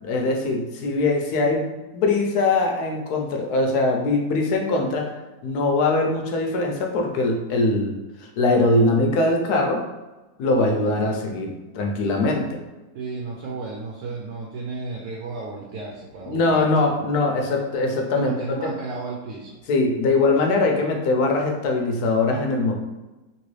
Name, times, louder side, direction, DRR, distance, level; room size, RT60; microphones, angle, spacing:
voice 1, 0.0-5.1 5.4-7.9 8.4-9.8 10.4-12.5 16.3-18.3 18.6-18.7 19.7-22.8, left 2 dB, 85° left, 2 dB, 1.2 m, -22 dB
voice 2, 12.9-16.7 18.1-19.6, right 3 dB, 85° right, -2 dB, 1.2 m, -33 dB
3.0 x 3.0 x 3.1 m, 1.1 s
omnidirectional pair, 1.6 m